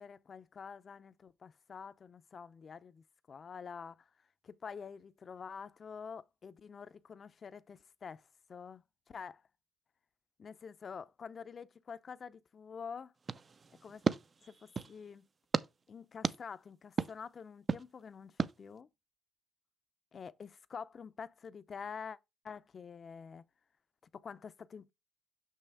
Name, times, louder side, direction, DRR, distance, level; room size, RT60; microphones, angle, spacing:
voice 1, 0.0-4.1 4.4-9.4 10.4-13.1 13.8-14.0 14.4-15.3 15.9-18.9 20.1-22.2 22.4-23.5 24.1-24.9, left 6 dB, 45° left, 0.6 m, -47 dB
sound 1, 13.3-15.0 15.5-15.7 16.2-16.4 17.0-17.1 17.7-17.8 18.4-18.5, right 5 dB, 40° right, 0.5 m, -34 dB
6.0 x 5.6 x 3.4 m
cardioid pair, 90°, 0 cm